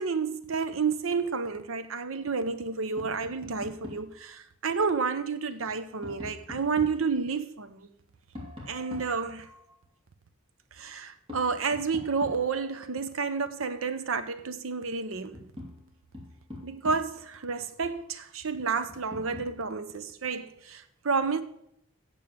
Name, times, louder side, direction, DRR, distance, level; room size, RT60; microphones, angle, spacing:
voice 1, 0.0-7.9 8.7-9.5 10.7-15.5 16.6-21.4, right 5 dB, 80° right, 0.8 m, -30 dB
Tap, 3.0-4.1 5.5-7.1 8.3-9.8 11.3-12.8 14.6-14.7 15.1-17.3 18.9-19.6, left 2 dB, 25° right, 2.7 m, -44 dB
8.6 x 7.2 x 7.2 m
head